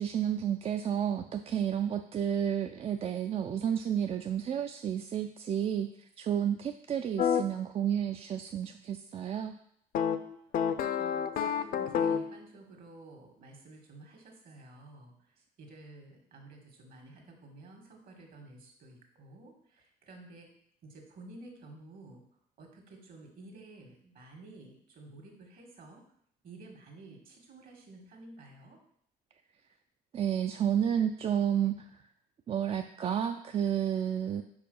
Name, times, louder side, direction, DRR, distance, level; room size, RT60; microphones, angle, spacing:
voice 1, 0.0-5.9 6.2-9.5 30.1-31.7 32.5-34.4, right 9 dB, 35° right, 6 dB, 0.3 m, -31 dB
sound 1, 7.2-7.4 9.9-12.4, left 8 dB, 60° left, 0.5 m, -29 dB
voice 2, 11.0-15.1 15.6-20.5 20.8-22.2 22.6-26.0 26.4-28.8, right 2 dB, 60° right, 2 dB, 1.7 m, -52 dB
4.8 x 4.7 x 5.3 m, 0.69 s
cardioid pair, 110°, 17 cm